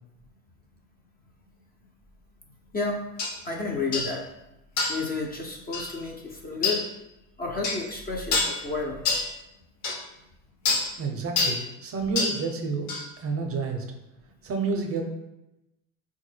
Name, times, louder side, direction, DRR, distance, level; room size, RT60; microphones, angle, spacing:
voice 1, 2.7-3.1 3.4-4.3 4.9-6.9 7.4-9.0, left 3 dB, 25° left, 0 dB, 0.4 m, -31 dB
sound 1, 3.2-3.3 3.9-4.1 4.8-5.1 5.7-5.9 6.6-6.8 7.6-7.8 8.3-8.6 9.1-9.3 9.8-10.0 10.7-10.9 11.4-11.6 12.2-12.4 12.9-13.0, left 3 dB, 65° left, 1.2 m, -26 dB
voice 2, 11.0-12.9 13.2-13.8 14.4-15.0, right 4 dB, 35° right, 4 dB, 0.6 m, -29 dB
3.6 x 2.2 x 3.2 m, 0.92 s
supercardioid pair, 90°, 41 cm